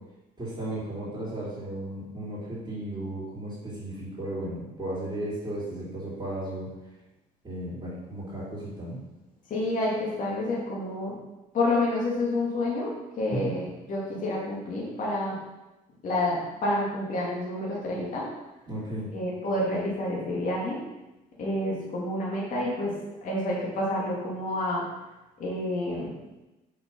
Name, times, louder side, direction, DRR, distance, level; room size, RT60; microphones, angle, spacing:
voice 1, 0.4-6.7 7.4-9.0 13.3-13.5 18.7-19.1, right 1 dB, 25° right, -9 dB, 3.3 m, -35 dB
voice 2, 9.5-11.1 11.5-15.4 16.0-18.3 19.1-20.8 21.4-24.9 25.4-26.2, left 1 dB, 50° left, -5 dB, 2.6 m, -29 dB
6.8 x 5.9 x 5.5 m, 1.0 s
cardioid pair, 110°, 17 cm